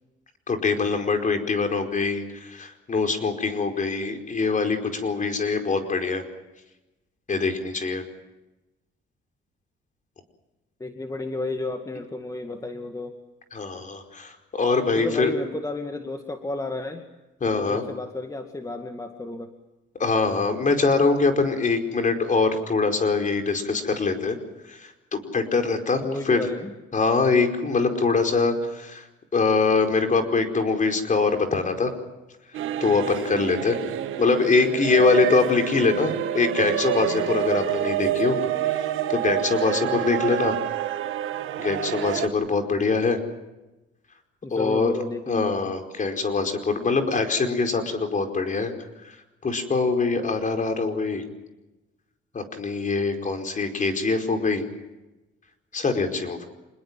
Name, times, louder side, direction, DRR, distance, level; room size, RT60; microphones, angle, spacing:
voice 1, 0.5-6.2 7.3-8.0 13.5-15.3 17.4-17.8 20.0-24.4 24.7-26.5 26.9-29.1 29.3-31.9 32.8-33.8 34.2-38.4 39.1-40.5 41.6-43.2 44.5-44.9 45.3-48.7 49.4-51.2 52.3-54.6 55.7-56.5, left 4 dB, 40° left, 6 dB, 4.9 m, -23 dB
voice 2, 10.8-13.2 15.0-17.0 17.5-19.5 26.0-26.7 39.8-40.3 44.4-45.6, left 2 dB, 15° left, 5 dB, 2.1 m, -32 dB
sound 1, 32.5-42.3, right 12 dB, 85° right, 1.9 m, -28 dB
26.5 x 21.0 x 7.6 m, 1.0 s
cardioid pair, 90°, 20 cm